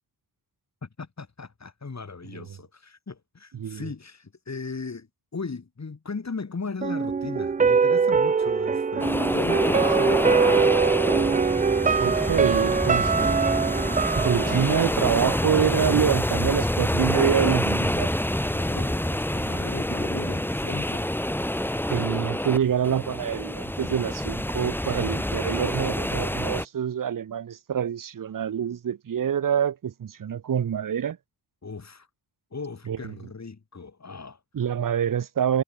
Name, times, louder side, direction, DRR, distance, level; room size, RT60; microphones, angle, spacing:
voice 1, 0.8-10.8 18.5-21.1 31.6-32.1 32.5-34.4, left 4 dB, 40° left, 7.3 m, -37 dB
voice 2, 3.5-3.9 12.0-13.8 14.2-18.1 21.9-31.2 32.9-33.1 34.5-35.6, right 8 dB, 55° right, 1.0 m, -26 dB
sound 1, 6.8-15.8 16.1-16.2, right 5 dB, 20° right, 0.4 m, -23 dB
sound 2, 9.0-26.6, left 1 dB, 5° left, 2.2 m, -27 dB
sound 3, 14.4-18.2, left 3 dB, 25° left, 3.1 m, -42 dB
cardioid pair, 80°, 40 cm